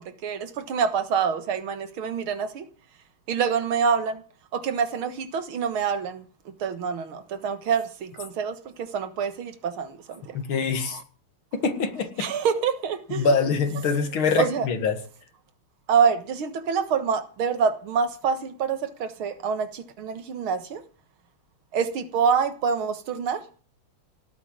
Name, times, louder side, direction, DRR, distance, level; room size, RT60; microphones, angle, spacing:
voice 1, 0.0-2.7 3.3-4.2 4.5-6.2 6.6-10.4 10.9-11.0 12.2-13.3 14.4-14.7 15.9-20.8 21.7-23.4, right 6 dB, 75° right, 2.3 m, -26 dB
voice 2, 10.3-11.0 11.5-12.3 13.1-15.0, left 4 dB, 70° left, 2.9 m, -24 dB
18.0 x 8.3 x 8.9 m
omnidirectional pair, 2.4 m